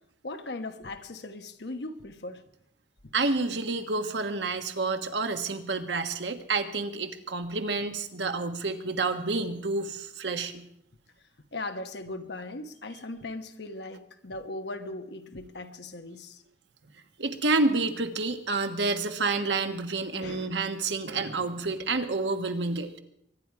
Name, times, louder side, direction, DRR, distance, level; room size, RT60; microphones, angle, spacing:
voice 1, 0.2-2.4 11.5-16.4 20.2-20.6, left 2 dB, 65° left, 1.2 m, -38 dB
voice 2, 3.1-10.7 17.2-22.9, right 3 dB, 85° right, 1.5 m, -29 dB
23.5 x 10.5 x 4.8 m
head